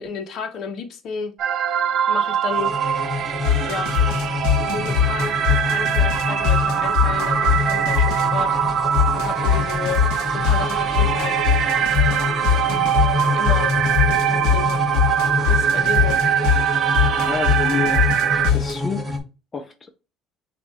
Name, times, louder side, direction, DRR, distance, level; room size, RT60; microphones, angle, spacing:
voice 1, 0.0-1.3 2.1-2.7 3.7-3.9 4.6-5.4 5.7-8.6 9.1-10.0 10.3-11.4 13.3-13.7 14.1-14.9 15.5-16.2, left 5 dB, 55° left, 1.1 m, -32 dB
sound 1, 1.4-18.5, right 9 dB, 50° right, 0.6 m, -22 dB
sound 2, 2.5-19.2, left 2 dB, 10° right, 1.3 m, -28 dB
sound 3, 3.4-8.4 8.9-18.8, left 9 dB, 85° left, 0.9 m, -23 dB
voice 2, 17.2-19.2 19.5-20.0, left 6 dB, 25° left, 0.5 m, -29 dB
6.1 x 2.6 x 3.3 m
cardioid pair, 115°, 0 cm